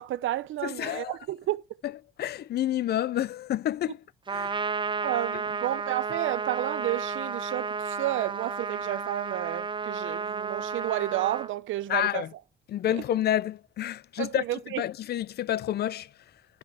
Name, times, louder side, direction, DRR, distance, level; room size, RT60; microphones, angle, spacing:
voice 1, 0.0-1.6 5.0-12.2 12.9-13.0 14.2-14.8, right 14 dB, 80° right, 0.8 m, -31 dB
voice 2, 0.6-1.2 1.8-1.9 2.2-4.0 4.3-4.5 11.9-12.3 12.7-14.4 14.8-16.1, left 12 dB, 55° left, 0.4 m, -29 dB
Trumpet, 4.3-11.5, right 5 dB, 25° right, 0.5 m, -32 dB
11.0 x 6.0 x 4.7 m
cardioid pair, 90°, 20 cm